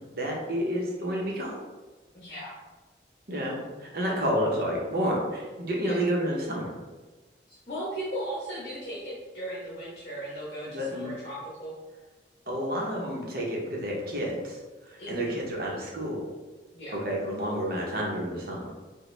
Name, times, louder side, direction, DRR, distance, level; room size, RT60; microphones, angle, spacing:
voice 1, 0.1-1.6 3.3-6.7 10.7-11.1 12.5-16.2 16.9-18.7, equal, 55° right, -2 dB, 0.9 m, -30 dB
voice 2, 2.1-2.6 5.8-6.0 7.5-11.8 15.0-15.4 16.7-17.0, right 1 dB, 40° left, -6 dB, 1.0 m, -37 dB
5.0 x 2.3 x 3.3 m, 1.2 s
head